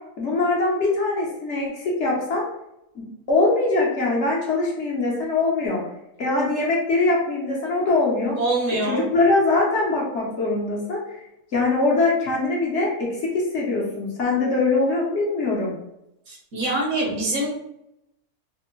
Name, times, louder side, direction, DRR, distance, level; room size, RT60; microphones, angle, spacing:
voice 1, 0.2-2.4 2.9-5.8 6.2-8.4 8.9-11.0 11.5-15.7, left 3 dB, 60° left, -3 dB, 1.0 m, -22 dB
voice 2, 8.4-9.1 16.3-17.5, right 2 dB, 70° right, -3 dB, 1.3 m, -24 dB
3.4 x 2.0 x 2.9 m, 0.83 s
omnidirectional pair, 1.5 m